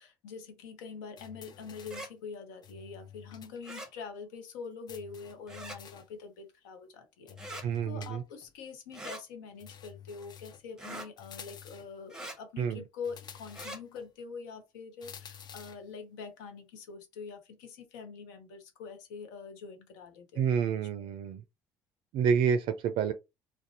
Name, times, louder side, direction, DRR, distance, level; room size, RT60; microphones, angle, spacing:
voice 1, 0.0-21.1, left 5 dB, 85° left, 0.6 m, -45 dB
sound 1, 1.2-2.2 2.6-3.6 3.8-3.9 4.9-6.2 7.3-8.5 9.6-10.7 11.2-12.0 13.0-14.1 15.0-15.9, left 8 dB, 45° left, 0.4 m, -50 dB
sound 2, 1.8-2.1 3.6-3.9 5.5-5.8 7.4-7.7 8.9-9.2 10.8-11.1 12.1-12.4 13.5-13.8, right 1 dB, 5° right, 0.8 m, -42 dB
voice 2, 7.6-8.2 12.6-12.8 20.4-21.4 22.1-23.1, right 7 dB, 60° right, 0.4 m, -28 dB
2.5 x 2.1 x 2.7 m
hypercardioid pair, 65°, 10 cm